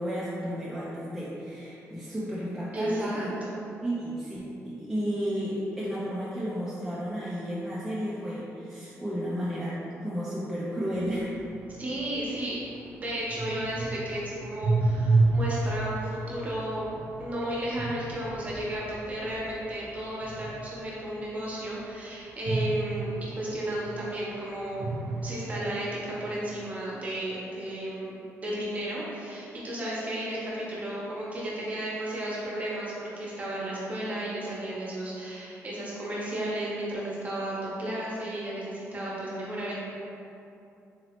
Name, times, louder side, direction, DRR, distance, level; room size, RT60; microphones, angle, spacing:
voice 1, 0.0-3.3 3.8-11.3, equal, 5° right, -9 dB, 0.4 m, -32 dB
voice 2, 2.7-3.7 11.8-12.6 13.0-16.9 17.2-25.0 25.2-39.7, right 1 dB, 25° right, -6 dB, 0.8 m, -33 dB
sound 1, 10.9-21.1 22.4-24.3 24.7-26.4, right 3 dB, 75° right, 0.7 m, -31 dB
3.9 x 3.0 x 2.9 m, 2.7 s
wide cardioid pair, 170°, 5 cm